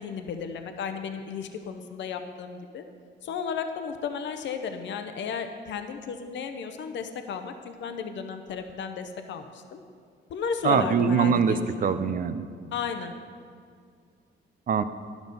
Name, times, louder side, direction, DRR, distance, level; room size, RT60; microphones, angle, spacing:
voice 1, 0.0-2.8 3.2-9.4 9.7-9.8 10.3-12.0 12.7-13.1, left 6 dB, 65° left, 7 dB, 0.7 m, -34 dB
voice 2, 10.6-12.4 14.7-14.8, right 6 dB, 45° right, 12 dB, 0.5 m, -23 dB
11.5 x 6.0 x 5.4 m, 2.2 s
cardioid pair, 90°, 20 cm